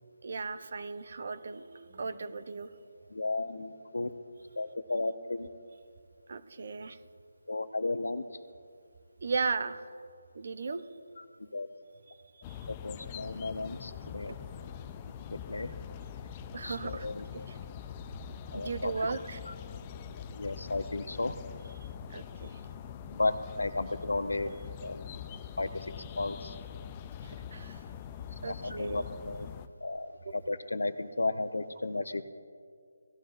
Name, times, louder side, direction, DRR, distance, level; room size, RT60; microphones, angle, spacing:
voice 1, 0.2-2.7 6.3-7.0 9.2-9.8 10.3-10.8 12.5-12.6 16.5-17.1 18.5-19.4 22.1-22.5 27.5-27.8 28.4-29.0 30.3-30.4, right 4 dB, 50° right, 11 dB, 0.7 m, -36 dB
voice 2, 3.1-4.1 4.6-5.5 7.5-8.2 11.2-11.7 12.7-14.4 15.3-15.7 16.6-17.3 18.5-18.9 19.5-19.6 20.2-21.3 23.1-24.5 24.8-25.1 25.6-25.9 26.2-26.5 28.4-29.5 29.8-32.2, left 2 dB, 85° left, 11 dB, 0.7 m, -34 dB
sound 1, 12.4-29.7, left 8 dB, 20° left, 0.4 m, -44 dB
17.5 x 11.5 x 2.5 m, 2.2 s
figure-of-eight pair, 165°, 0 cm